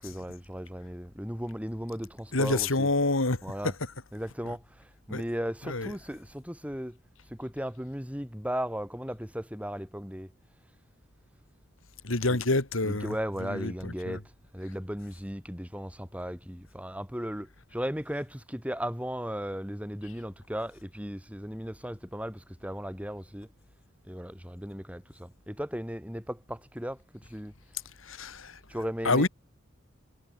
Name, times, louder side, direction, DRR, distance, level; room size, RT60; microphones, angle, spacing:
voice 1, 0.0-2.9 3.4-3.8 4.1-4.6 5.1-7.0 7.3-10.3 12.3-12.4 12.8-14.2 14.5-23.5 24.1-27.5 28.7-29.3, equal, 5° right, 5.4 m, -36 dB
voice 2, 2.3-3.7 5.1-5.2 5.7-5.9 12.0-13.1 13.4-14.2 28.0-28.6 29.0-29.3, left 2 dB, 90° left, 2.4 m, -27 dB
head